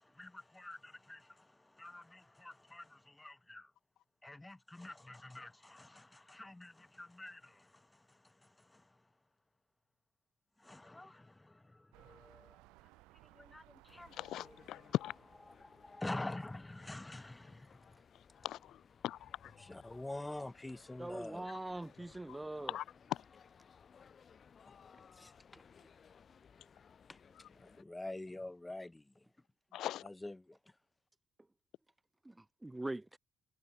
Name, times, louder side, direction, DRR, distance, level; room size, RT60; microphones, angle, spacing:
voice 1, 0.2-3.7 4.2-9.0 10.6-12.6 13.3-14.9 15.5-18.0 19.6-21.5 24.7-24.8 25.2-25.6 27.1-27.2 27.6-29.2 30.0-30.6, left 2 dB, 15° left, 2.1 m, -48 dB
sound 1, 11.9-16.9 17.5-17.6, right 22 dB, 65° right, 3.2 m, -64 dB
sound 2, 13.9-27.8, left 6 dB, 40° left, 3.5 m, -62 dB
voice 2, 14.1-15.1 18.4-19.5 22.3-22.4 22.7-22.8 23.1-23.2 29.7-30.1, left 13 dB, 55° left, 0.5 m, -39 dB
voice 3, 21.0-22.8 32.2-33.2, right 2 dB, 10° right, 0.8 m, -42 dB
figure-of-eight pair, 45°, 0 cm